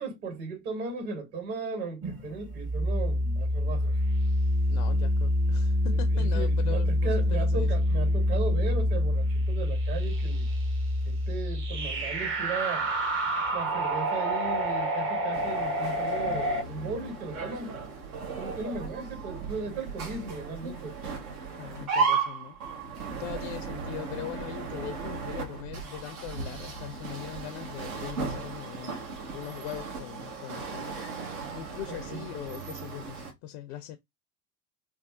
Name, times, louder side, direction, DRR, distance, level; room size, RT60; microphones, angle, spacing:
voice 1, 0.0-3.9 6.1-10.5 11.0-12.9 13.5-17.8 18.4-21.0 31.9-32.2, right 4 dB, 55° right, 1.9 m, -36 dB
sound 1, 2.0-16.6, equal, 30° right, 0.7 m, -27 dB
voice 2, 4.7-7.7 21.6-22.6 23.1-29.0 29.3-34.0, left 12 dB, 50° left, 0.5 m, -41 dB
sound 2, 15.3-33.3, right 5 dB, 70° right, 1.1 m, -35 dB
3.4 x 2.3 x 2.4 m
figure-of-eight pair, 75°, 44 cm